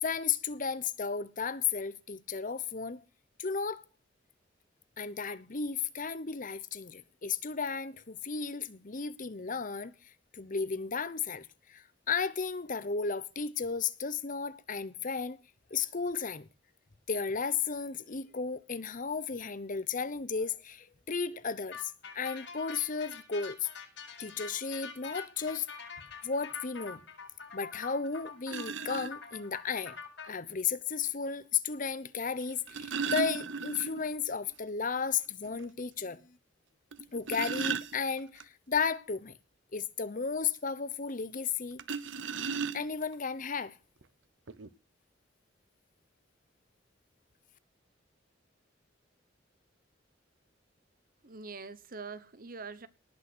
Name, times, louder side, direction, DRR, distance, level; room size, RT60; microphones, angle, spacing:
voice 1, 0.0-3.0 3.4-3.8 5.0-9.9 10.3-15.4 15.7-16.5 17.1-23.7 24.2-25.7 26.2-27.0 27.5-30.0 30.2-36.2 37.1-39.4 39.7-41.8 42.7-43.8, left 5 dB, 45° left, 0.9 m, -34 dB
sound 1, 21.7-30.3, left 5 dB, 65° left, 7.1 m, -45 dB
sound 2, 28.5-29.1 30.5-30.6 32.4-34.1 34.5-34.6 35.0-35.1 35.6-35.7 36.9-38.4 41.8-43.1 44.0-44.1 44.5-44.7, right 6 dB, 85° right, 0.9 m, -36 dB
voice 2, 51.2-52.9, right 4 dB, 50° right, 1.1 m, -44 dB
19.0 x 6.6 x 6.2 m
head